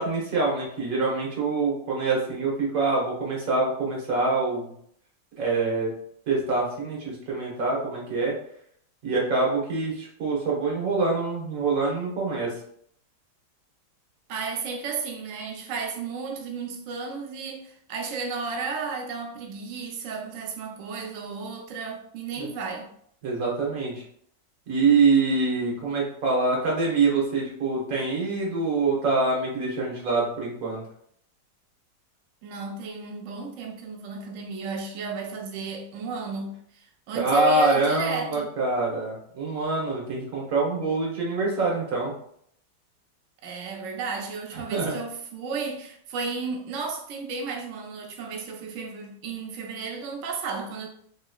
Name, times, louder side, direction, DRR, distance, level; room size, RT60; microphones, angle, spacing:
voice 1, 0.0-4.7 5.4-5.9 6.3-8.4 9.0-12.5 23.2-24.0 24.7-30.8 37.1-42.1 44.7-45.0, right 3 dB, 55° right, 1.4 m, -25 dB
voice 2, 14.3-22.9 32.4-38.5 43.4-50.9, right 5 dB, 80° right, 0.7 m, -33 dB
3.8 x 2.9 x 2.3 m
omnidirectional pair, 1.9 m